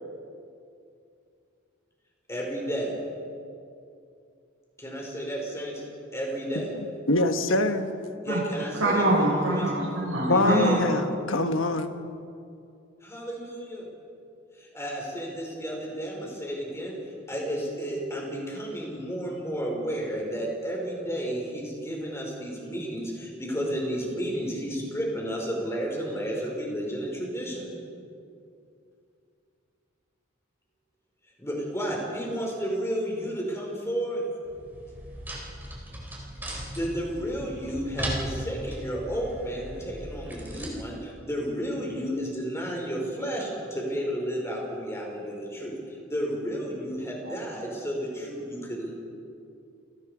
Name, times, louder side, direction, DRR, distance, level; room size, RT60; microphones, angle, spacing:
voice 1, 2.3-2.9 4.8-5.7 6.1-6.6 8.2-9.7 10.2-10.9 13.0-13.9 14.5-17.0 17.3-27.7 31.4-34.2 36.5-48.9, equal, 15° left, 5.1 m, -32 dB
voice 2, 7.1-8.0 10.3-11.9, left 2 dB, 70° left, 1.4 m, -24 dB
voice 3, 8.8-10.8, right 1 dB, 80° right, 5.8 m, -24 dB
sound 1, 34.4-40.7, equal, 10° right, 4.4 m, -37 dB
29.5 x 19.0 x 5.1 m
head